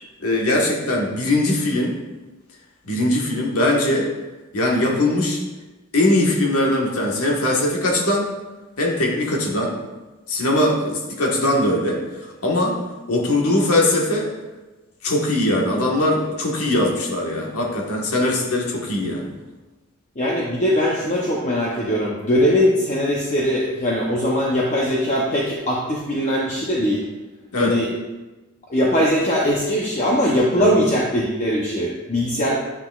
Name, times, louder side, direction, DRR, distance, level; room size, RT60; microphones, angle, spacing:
voice 1, 0.2-2.0 2.8-4.1 4.5-5.4 5.9-8.3 8.8-9.8 10.3-12.0 12.4-12.8 13.1-14.3 15.0-19.3 27.5-27.8 30.6-30.7, left 1 dB, 80° left, -1 dB, 1.4 m, -20 dB
voice 2, 20.2-27.0 27.6-27.9 28.7-32.6, equal, 30° left, -3 dB, 0.7 m, -20 dB
9.6 x 5.9 x 2.4 m, 1.1 s
head